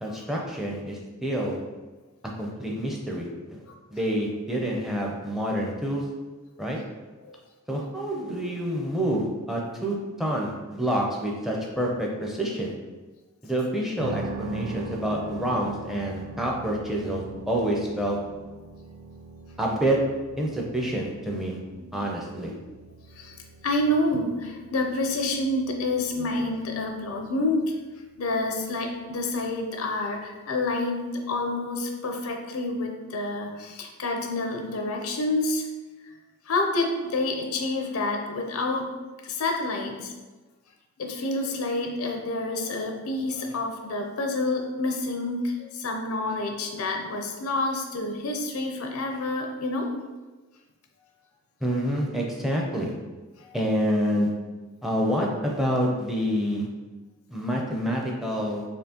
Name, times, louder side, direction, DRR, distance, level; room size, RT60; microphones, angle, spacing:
voice 1, 0.0-1.6 2.4-3.6 3.9-6.0 6.6-6.8 7.7-12.7 13.4-18.2 19.6-20.0 20.4-21.6 21.9-22.5 51.6-52.9 53.5-54.3 54.8-56.7 57.3-58.6, equal, ahead, -1 dB, 0.5 m, -27 dB
sound 1, 14.0-29.8, right 3 dB, 70° right, 0.4 m, -43 dB
voice 2, 23.6-27.8 28.2-35.7 36.5-38.9 39.2-40.1 41.0-49.9 53.4-53.6, left 2 dB, 90° left, 3 dB, 0.6 m, -28 dB
4.3 x 3.1 x 2.8 m, 1.2 s
head